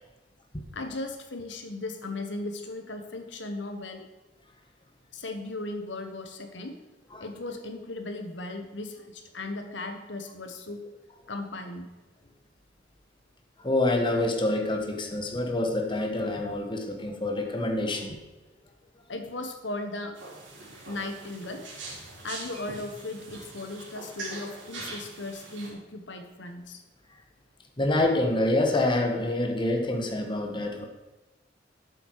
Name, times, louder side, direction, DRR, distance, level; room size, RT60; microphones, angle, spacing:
voice 1, 0.7-4.0 5.1-6.8 7.2-10.8 11.3-11.9 19.1-20.1 20.9-21.7 22.2-26.8, left 2 dB, 80° left, 6 dB, 1.3 m, -37 dB
voice 2, 13.6-18.2 27.8-30.9, left 1 dB, 25° left, 3 dB, 1.5 m, -26 dB
sound 1, 20.1-25.7, right 3 dB, 90° right, 3.6 m, -42 dB
12.5 x 8.0 x 4.8 m, 1.1 s
head